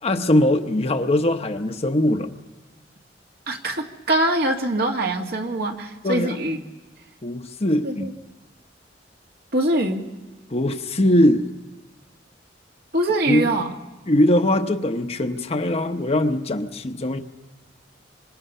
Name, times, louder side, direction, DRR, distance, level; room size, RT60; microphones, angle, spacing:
voice 1, 0.0-2.3 6.0-6.4 7.2-8.1 10.5-11.5 13.3-13.4 14.1-17.2, left 1 dB, 35° left, 6 dB, 1.0 m, -21 dB
voice 2, 3.5-6.6 7.8-8.1 9.5-10.1 12.9-13.7, right 1 dB, 60° right, 2 dB, 2.0 m, -23 dB
26.5 x 26.0 x 5.6 m, 1.2 s
head